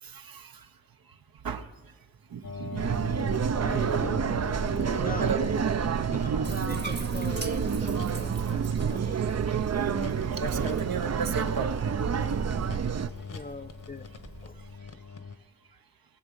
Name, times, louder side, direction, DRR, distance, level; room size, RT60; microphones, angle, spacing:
voice 1, 0.0-0.7 1.1-2.0 2.3-4.0 4.6-5.5 5.7-6.4 8.3-9.1 9.5-9.8 10.1-12.8 13.3-13.4 14.6-14.7, right 6 dB, 75° right, 7 dB, 1.0 m, -37 dB
sound 1, 2.4-15.4, left 5 dB, 60° left, 1.3 m, -42 dB
sound 2, 2.8-13.1, right 7 dB, 45° right, 0.6 m, -28 dB
voice 2, 3.6-4.2 5.0-5.3 6.1-9.2 13.3-14.1 14.4-14.6, left 3 dB, 25° left, 12 dB, 0.5 m, -41 dB
Bathtub (filling or washing), 6.4-14.8, right 3 dB, 30° right, 1.1 m, -44 dB
20.5 x 7.1 x 5.4 m, 1.2 s
cardioid pair, 55°, 36 cm